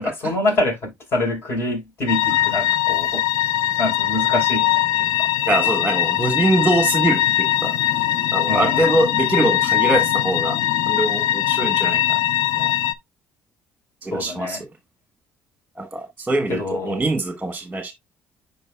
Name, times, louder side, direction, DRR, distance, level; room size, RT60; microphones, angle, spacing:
voice 1, 0.0-3.2 3.8-5.3 8.5-8.9 14.1-14.6 16.5-17.0, left 2 dB, 45° left, 4.1 m, -25 dB
sound 1, 2.1-12.9, left 13 dB, 80° left, 0.5 m, -21 dB
voice 2, 5.5-7.7 8.3-10.6 10.9-12.2 12.6-12.7 14.0-14.6 15.8-17.9, right 2 dB, 15° right, 1.2 m, -23 dB
9.6 x 4.4 x 2.2 m
supercardioid pair, 80°, 6 cm